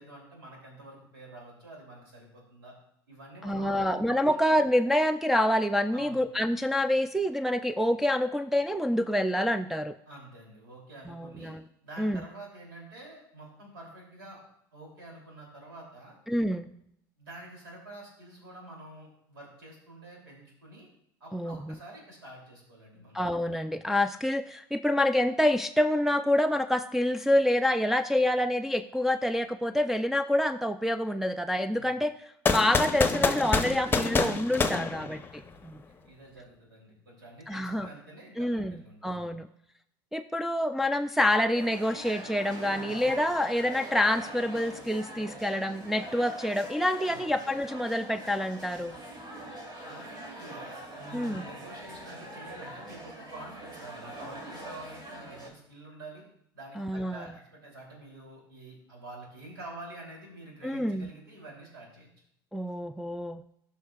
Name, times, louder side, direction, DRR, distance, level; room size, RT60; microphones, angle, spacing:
voice 1, 0.0-2.7 3.1-4.4 5.9-6.2 10.1-11.5 11.8-14.4 14.7-16.1 17.2-20.9 21.2-23.2 31.7-32.0 34.7-35.0 35.9-39.2 42.7-43.0 47.1-47.2 49.8-56.2 56.5-62.1, right 2 dB, 90° right, -1 dB, 2.9 m, -48 dB
voice 2, 3.4-9.9 11.1-11.6 12.0-12.2 16.3-16.7 21.3-21.8 23.1-35.2 35.6-35.8 37.5-37.9 38.4-38.8 39.0-39.5 40.1-48.9 51.1-51.4 56.8-57.2 60.6-61.1 62.5-63.4, left 1 dB, 5° right, 6 dB, 0.3 m, -27 dB
sound 1, 32.5-35.6, left 4 dB, 20° left, 0.8 m, -27 dB
sound 2, 41.5-55.5, right 1 dB, 40° right, 2.4 m, -43 dB
13.5 x 5.6 x 2.4 m, 0.73 s
hypercardioid pair, 85°, 12 cm